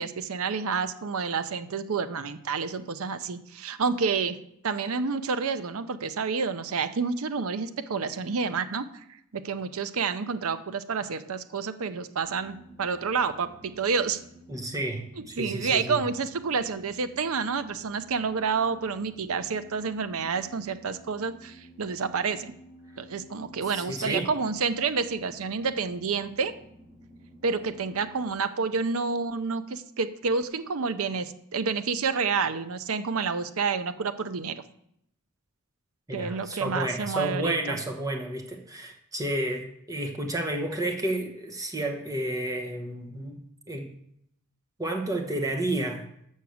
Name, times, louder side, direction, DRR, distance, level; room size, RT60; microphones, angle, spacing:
voice 1, 0.0-4.4 4.6-8.9 9.3-14.2 15.2-22.5 23.0-26.5 27.4-34.6 36.1-37.8, right 5 dB, 75° right, 12 dB, 0.6 m, -29 dB
sound 1, 12.2-28.3, right 1 dB, 30° right, 3.6 m, -52 dB
voice 2, 14.5-16.0 23.6-24.3 36.1-43.4 43.7-43.9 44.8-46.0, right 1 dB, 15° right, 1 dB, 1.0 m, -31 dB
6.4 x 6.0 x 7.1 m, 0.74 s
head